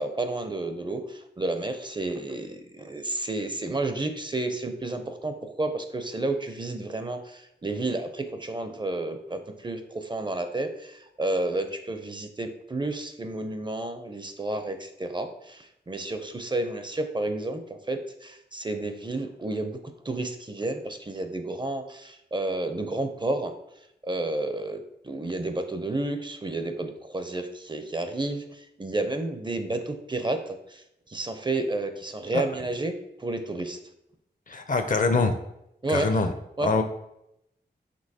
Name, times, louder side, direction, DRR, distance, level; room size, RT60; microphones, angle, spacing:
voice 1, 0.0-17.6 17.9-19.8 20.0-23.5 24.0-30.8 31.1-32.9 33.2-33.8 35.8-36.1 36.6-36.7, right 2 dB, 25° right, 7 dB, 0.5 m, -31 dB
voice 2, 34.5-35.4 35.9-36.3 36.6-36.8, left 3 dB, 45° left, 8 dB, 0.5 m, -24 dB
5.2 x 3.0 x 2.7 m, 0.82 s
cardioid pair, 50°, 19 cm